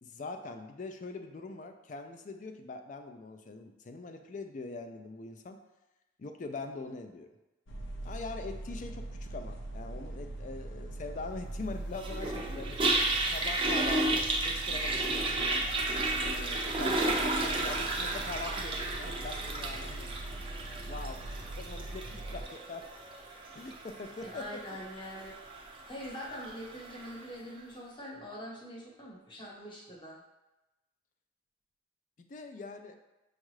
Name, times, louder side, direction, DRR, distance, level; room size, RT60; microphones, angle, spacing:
voice 1, 0.0-5.6 6.2-7.3 8.0-12.8 13.2-15.6 16.2-20.1 20.9-21.2 21.5-22.8 23.5-24.6 32.2-32.9, left 3 dB, 40° left, 6 dB, 0.4 m, -42 dB
sound 1, 7.7-22.4, right 1 dB, 85° left, 0.6 m, -42 dB
Toilet flush, 12.0-27.2, right 2 dB, 25° right, 0.5 m, -33 dB
voice 2, 24.2-25.4 25.9-30.2, equal, 25° left, -4 dB, 0.9 m, -44 dB
6.4 x 2.4 x 3.1 m, 1.0 s
head